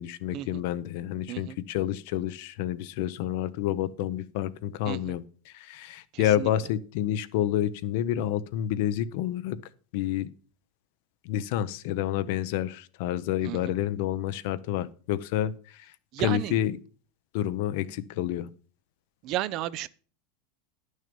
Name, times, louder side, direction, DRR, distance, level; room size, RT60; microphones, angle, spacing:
voice 1, 0.0-9.6 9.9-10.3 11.2-15.9 16.2-16.8 17.3-18.5, left 12 dB, 65° left, 0.7 m, -29 dB
voice 2, 6.1-6.5 13.4-13.7 16.1-16.6 19.2-19.9, right 14 dB, 45° right, 0.5 m, -33 dB
10.5 x 6.4 x 5.2 m
supercardioid pair, 150°, 0 cm